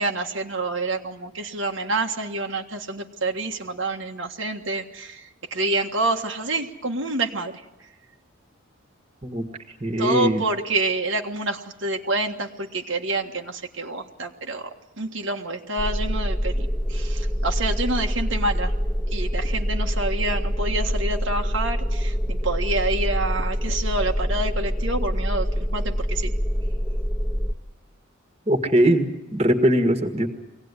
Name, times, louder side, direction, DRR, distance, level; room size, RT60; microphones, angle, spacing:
voice 1, 0.0-7.6 10.0-14.7 15.0-18.7 19.1-26.3, right 2 dB, 70° right, 2 dB, 1.6 m, -27 dB
voice 2, 9.8-10.4 28.5-30.3, right 1 dB, 30° right, 6 dB, 1.8 m, -21 dB
sound 1, 15.8-27.5, equal, 5° left, 1.2 m, -25 dB
23.5 x 17.5 x 9.8 m, 1.0 s
head